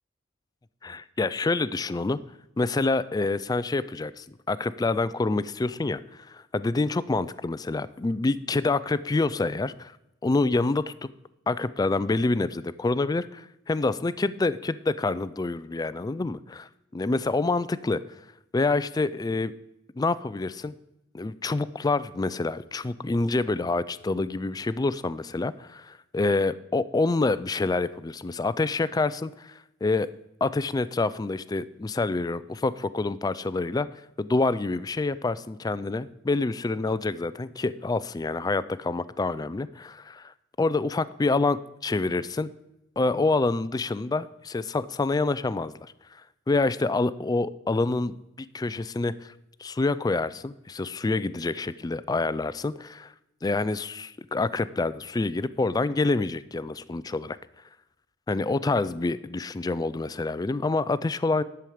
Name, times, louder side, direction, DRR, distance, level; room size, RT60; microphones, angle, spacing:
voice 1, 0.8-2.2 2.6-9.9 10.2-10.9 11.5-16.7 16.9-18.0 18.5-19.5 20.0-20.7 21.1-30.1 30.4-33.9 34.2-42.5 43.0-45.9 46.5-49.3 49.6-53.1 53.4-57.4 58.3-61.4, left 3 dB, 20° left, 16 dB, 0.3 m, -27 dB
11.0 x 7.1 x 5.0 m, 0.90 s
head